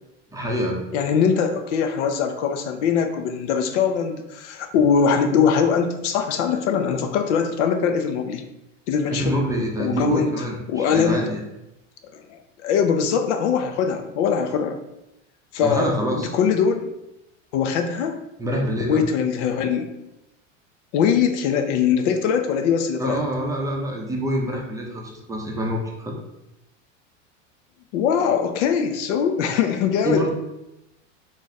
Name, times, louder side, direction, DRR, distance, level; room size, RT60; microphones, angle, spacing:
voice 1, 0.3-0.8 9.1-11.4 15.6-16.3 18.4-19.0 23.0-26.2 30.0-30.3, equal, 10° right, -2 dB, 0.6 m, -26 dB
voice 2, 0.9-8.4 8.9-9.4 9.8-10.3 10.7-11.2 12.1-14.8 15.5-15.9 16.3-16.9 17.5-18.2 18.9-19.9 20.9-23.2 27.9-30.3, left 7 dB, 65° left, 6 dB, 0.6 m, -22 dB
3.1 x 2.6 x 3.9 m, 0.90 s
hypercardioid pair, 115°, 38 cm